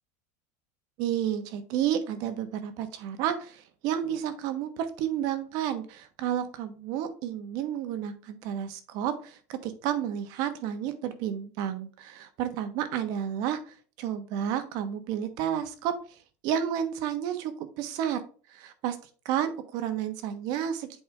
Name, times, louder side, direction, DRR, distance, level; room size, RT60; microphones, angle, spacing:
voice 1, 1.0-15.9 16.4-18.2 18.5-19.0 19.2-21.0, right 9 dB, 60° right, 10 dB, 1.2 m, -31 dB
7.8 x 5.2 x 3.4 m, 0.38 s
supercardioid pair, 140°, 8 cm